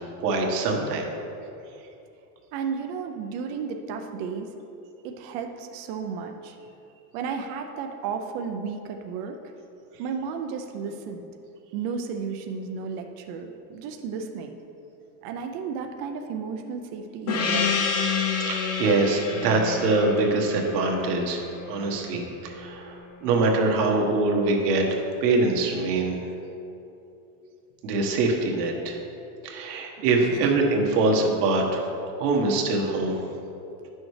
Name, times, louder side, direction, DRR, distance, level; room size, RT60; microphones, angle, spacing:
voice 1, 0.2-1.1 18.4-24.9 25.2-26.2 27.8-29.0 29.4-31.8 32.2-33.2, right 3 dB, 85° right, 0 dB, 1.4 m, -24 dB
voice 2, 2.5-4.5 5.0-6.6 7.1-9.4 10.0-11.3 11.7-14.6 15.2-17.8 30.3-30.5, right 6 dB, 40° right, 4 dB, 0.4 m, -33 dB
Gong, 17.3-22.3, left 5 dB, 35° left, 0.7 m, -28 dB
9.6 x 6.3 x 3.2 m, 2.8 s
supercardioid pair, 155°, 47 cm